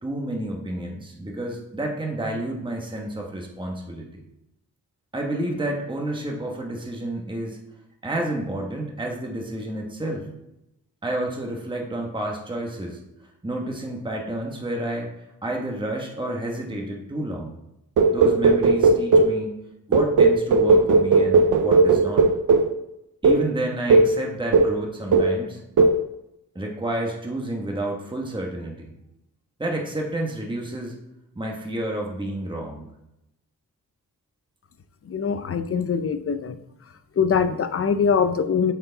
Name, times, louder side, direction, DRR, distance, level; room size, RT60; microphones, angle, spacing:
voice 1, 0.0-4.2 5.1-7.6 8.0-10.3 11.0-13.0 13.4-15.1 15.4-17.5 18.1-19.5 19.9-22.3 23.2-25.6 26.5-28.9 29.6-30.9 31.3-32.9, right 1 dB, 15° right, 0 dB, 1.2 m, -30 dB
sound 1, 18.0-19.4 19.9-22.7 23.2-23.5 23.9-24.2 24.5-24.8 25.1-25.4 25.8-26.0, right 3 dB, 60° right, 0.6 m, -17 dB
voice 2, 35.1-36.6 37.2-38.7, left 6 dB, 40° left, 11 dB, 0.5 m, -23 dB
7.6 x 4.7 x 3.9 m, 0.85 s
wide cardioid pair, 85°, 35 cm